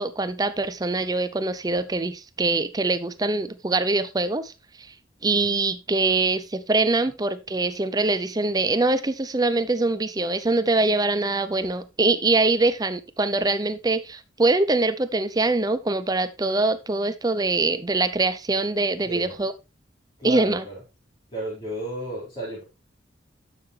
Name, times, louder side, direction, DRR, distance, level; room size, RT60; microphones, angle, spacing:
voice 1, 0.0-4.5 5.2-19.5 20.2-20.6, right 3 dB, 20° right, 12 dB, 0.6 m, -23 dB
voice 2, 19.0-19.4 20.2-20.8 21.3-22.6, right 1 dB, 30° left, -9 dB, 4.7 m, -33 dB
12.5 x 5.9 x 3.2 m, 0.26 s
head